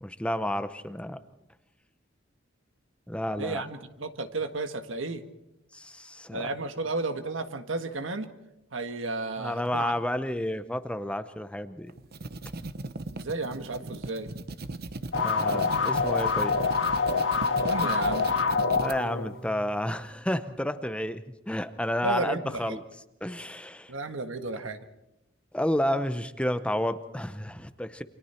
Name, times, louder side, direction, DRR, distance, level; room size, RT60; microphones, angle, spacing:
voice 1, 0.0-1.2 3.1-3.6 5.7-6.5 9.4-11.9 15.2-16.6 18.7-22.8 23.2-23.9 25.5-28.0, left 1 dB, 5° left, 11 dB, 0.7 m, -31 dB
voice 2, 3.4-5.2 6.3-8.3 8.7-9.9 13.1-14.3 17.6-18.3 22.0-22.8 23.9-24.8, right 3 dB, 80° right, 8 dB, 1.6 m, -33 dB
sound 1, 11.9-19.0, right 2 dB, 55° right, 0.9 m, -38 dB
sound 2, 15.1-19.8, left 4 dB, 70° left, 1.6 m, -26 dB
28.5 x 25.5 x 4.5 m, 0.90 s
head